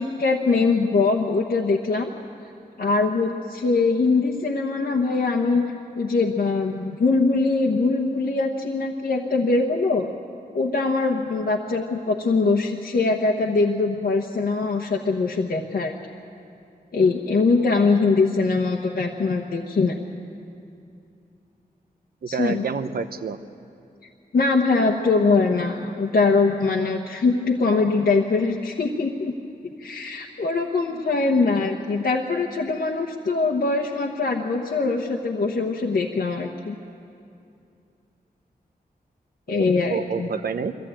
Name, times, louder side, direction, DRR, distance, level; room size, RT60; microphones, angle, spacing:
voice 1, 0.0-2.1 2.8-5.6 5.9-10.1 10.5-15.9 16.9-20.0 22.3-22.6 24.3-29.3 29.8-36.8 39.5-40.3, left 3 dB, 70° left, -1 dB, 1.2 m, -22 dB
voice 2, 22.2-23.4 39.6-40.8, right 5 dB, 70° right, 10 dB, 0.9 m, -28 dB
22.5 x 15.0 x 8.9 m, 2.6 s
wide cardioid pair, 110°, 16 cm